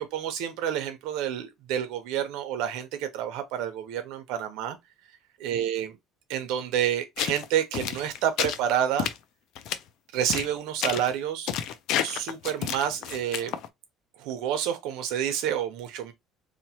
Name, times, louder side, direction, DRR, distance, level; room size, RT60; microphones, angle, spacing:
voice 1, 0.1-4.8 5.4-6.0 6.3-9.1 10.1-11.5 12.0-13.6 14.2-16.1, right 10 dB, 80° right, 0.7 m, -29 dB
sound 1, 7.2-7.4 7.7-8.6 9.0-9.2 9.6-9.8 10.3-10.5 10.8-11.1 11.5-13.7, left 10 dB, 65° left, 0.4 m, -30 dB
2.9 x 2.1 x 2.8 m
cardioid pair, 150°, 0 cm